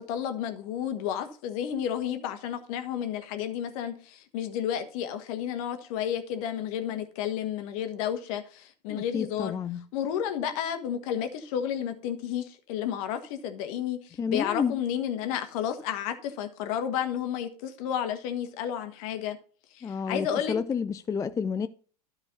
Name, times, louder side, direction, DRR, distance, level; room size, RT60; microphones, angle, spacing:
voice 1, 0.1-9.5 9.9-19.4 19.7-20.6, left 9 dB, 55° left, 1.6 m, -31 dB
voice 2, 8.9-9.8 14.2-14.7 19.8-21.7, left 6 dB, 15° left, 0.4 m, -30 dB
12.5 x 4.9 x 4.1 m
hypercardioid pair, 90°, 21 cm